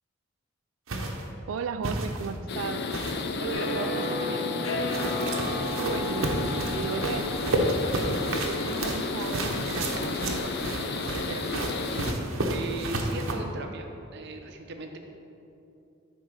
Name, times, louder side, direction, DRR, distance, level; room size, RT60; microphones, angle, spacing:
sound 1, 0.9-1.2 1.8-2.3 2.9-3.3 4.9-13.3, right 1 dB, 90° right, 0.9 m, -31 dB
voice 1, 1.5-2.8 5.8-11.7, right 6 dB, 70° right, 11 dB, 0.3 m, -36 dB
sound 2, 2.5-12.1, left 3 dB, 55° left, 0.5 m, -32 dB
voice 2, 3.4-4.5 12.5-15.0, right 2 dB, 55° right, 4 dB, 0.7 m, -36 dB
sound 3, 3.5-9.1, left 1 dB, 80° left, 0.9 m, -34 dB
8.7 x 3.9 x 6.2 m, 2.7 s
head